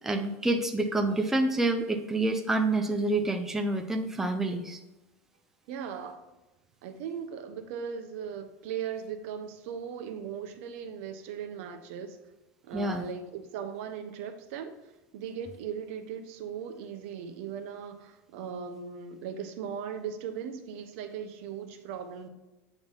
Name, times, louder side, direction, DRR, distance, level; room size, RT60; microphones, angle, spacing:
voice 1, 0.0-4.8 12.7-13.0, right 2 dB, 5° right, 4 dB, 0.4 m, -28 dB
voice 2, 5.7-6.2 6.8-12.2 12.6-14.7 15.1-22.3, right 7 dB, 70° right, 7 dB, 0.9 m, -38 dB
8.4 x 3.4 x 4.1 m, 1.0 s
supercardioid pair, 150°, 7 cm